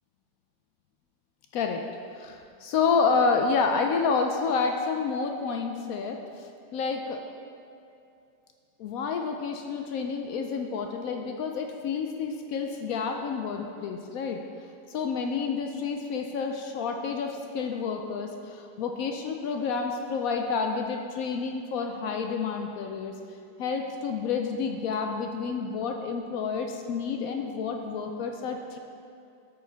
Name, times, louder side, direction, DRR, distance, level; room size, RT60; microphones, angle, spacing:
voice 1, 2.2-7.2 8.8-14.4 14.9-23.1 23.6-28.8, left 5 dB, 75° left, 4 dB, 0.8 m, -29 dB
12.5 x 4.6 x 3.4 m, 2.6 s
omnidirectional pair, 2.0 m